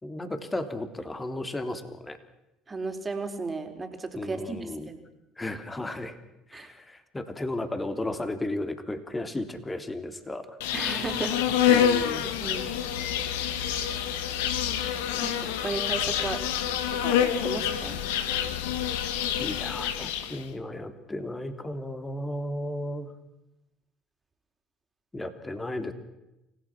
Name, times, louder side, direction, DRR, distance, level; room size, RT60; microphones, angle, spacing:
voice 1, 0.0-2.2 4.2-4.9 5.4-6.2 6.5-10.5 11.7-12.3 19.4-23.1 25.1-25.9, left 1 dB, 15° left, 8 dB, 3.2 m, -34 dB
voice 2, 2.7-5.0 6.5-6.7 10.7-11.4 11.6-11.9 12.4-12.7 15.2-16.4 16.9-18.0, right 3 dB, 25° right, 5 dB, 4.2 m, -35 dB
Insect, 10.6-20.4, left 9 dB, 85° left, 1.9 m, -27 dB
29.0 x 16.5 x 6.2 m, 0.90 s
hypercardioid pair, 75°, 0 cm